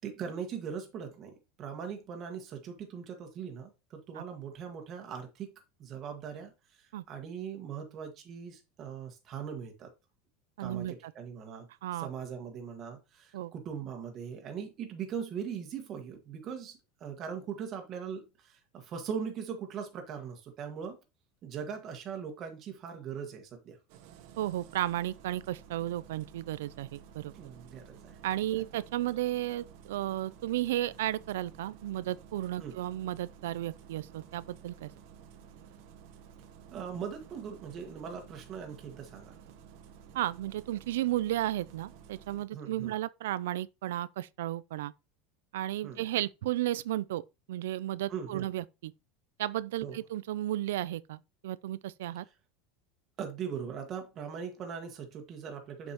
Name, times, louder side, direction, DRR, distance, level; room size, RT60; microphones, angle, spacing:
voice 1, 0.0-5.5 5.8-9.9 10.6-11.7 12.0-21.0 21.4-23.8 27.3-28.2 32.6-32.8 36.7-39.4 42.5-42.9 45.8-46.0 48.1-48.5 49.8-50.0 53.2-55.9, right 7 dB, 35° right, 1.6 m, -40 dB
voice 2, 10.6-11.1 11.8-12.1 13.3-13.5 24.4-27.3 28.2-34.9 40.1-44.9 45.5-48.9 49.4-52.3, right 14 dB, 90° right, 0.3 m, -34 dB
Engine starting, 23.9-42.5, right 7 dB, 65° right, 1.0 m, -53 dB
7.1 x 5.3 x 2.9 m
supercardioid pair, 145°, 0 cm